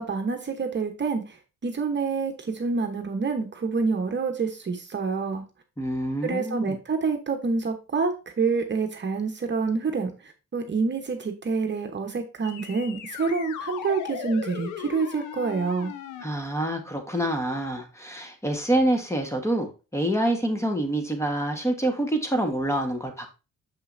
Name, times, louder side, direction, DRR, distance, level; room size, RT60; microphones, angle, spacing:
voice 1, 0.0-1.4 1.6-5.4 6.2-15.9, right 4 dB, 35° right, 5 dB, 1.0 m, -27 dB
voice 2, 5.8-6.8 16.2-23.3, right 1 dB, 10° left, 5 dB, 1.3 m, -26 dB
sound 1, 12.4-16.2, left 9 dB, 80° left, 0.8 m, -37 dB
6.6 x 5.5 x 2.6 m, 0.30 s
cardioid pair, 90°, 30 cm